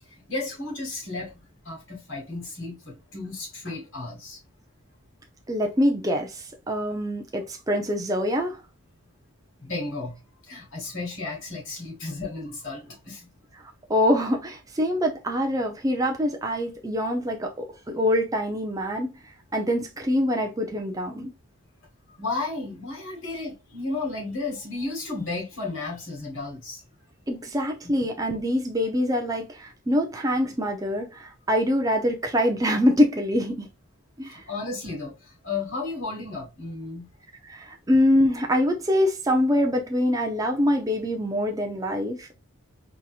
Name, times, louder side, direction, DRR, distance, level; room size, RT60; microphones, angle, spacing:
voice 1, 0.3-4.4 9.6-10.2 10.5-13.2 22.2-26.8 27.8-27.9 34.3-35.1 35.4-37.1, left 3 dB, 60° left, 1.7 m, -33 dB
voice 2, 5.5-8.6 13.9-19.1 19.5-21.3 27.3-33.7 34.2-34.4 37.5-42.3, left 1 dB, 15° right, 0.4 m, -24 dB
4.0 x 2.9 x 2.3 m
head